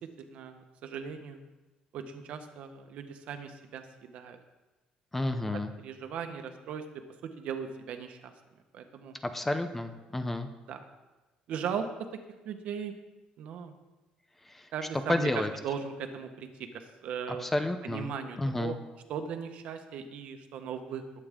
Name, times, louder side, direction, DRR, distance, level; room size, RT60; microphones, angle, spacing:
voice 1, 0.2-1.4 1.9-4.4 5.8-6.8 7.4-8.3 8.7-9.1 10.7-10.8 11.5-12.2 12.4-12.9 13.4-13.7 14.7-17.5 17.8-18.8 19.1-21.1, right 7 dB, 60° right, 7 dB, 1.3 m, -38 dB
voice 2, 5.1-5.7 9.3-10.5 14.4-14.7 15.1-15.5 17.3-18.1 18.4-18.7, left 1 dB, 10° left, 8 dB, 0.7 m, -30 dB
20.0 x 8.8 x 3.8 m, 1.2 s
cardioid pair, 165°, 2 cm